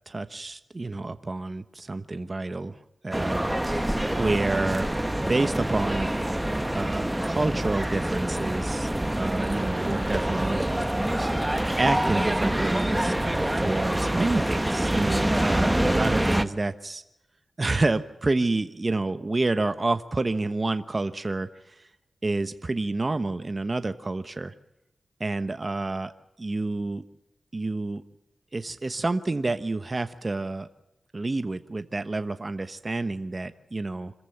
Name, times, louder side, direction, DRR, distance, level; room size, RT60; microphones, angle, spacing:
voice 1, 0.1-2.8 3.0-3.5 4.2-4.9 5.2-6.1 6.7-8.9 9.2-10.9 11.8-17.0 17.6-21.5 22.2-24.5 25.2-26.1 26.4-27.0 27.5-28.0 28.5-30.7 31.1-34.1, right 2 dB, 35° right, 10 dB, 1.1 m, -28 dB
sound 1, 3.1-16.4, right 1 dB, 10° right, 1.2 m, -26 dB
26.5 x 14.5 x 7.1 m, 0.90 s
wide cardioid pair, 80°, 0 cm